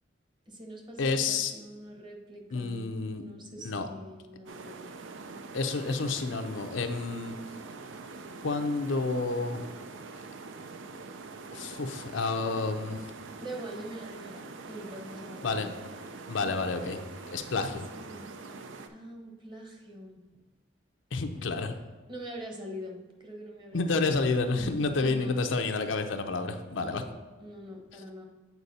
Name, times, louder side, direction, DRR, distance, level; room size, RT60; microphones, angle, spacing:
voice 1, 0.5-4.9 13.4-15.8 17.9-18.2 18.9-20.2 22.1-24.2 24.6-25.4 26.7-27.1 27.4-28.3, equal, 25° right, 1 dB, 1.0 m, -44 dB
voice 2, 1.0-1.5 2.5-3.2 3.6-3.9 5.5-7.3 8.4-9.6 11.5-13.0 15.4-15.7 16.3-17.0 17.3-17.9 21.1-21.8 23.7-27.0, left 3 dB, 80° left, 6 dB, 0.6 m, -29 dB
sound 1, 4.5-18.9, right 3 dB, 80° right, 0.5 m, -44 dB
8.2 x 4.5 x 4.1 m, 1.3 s
head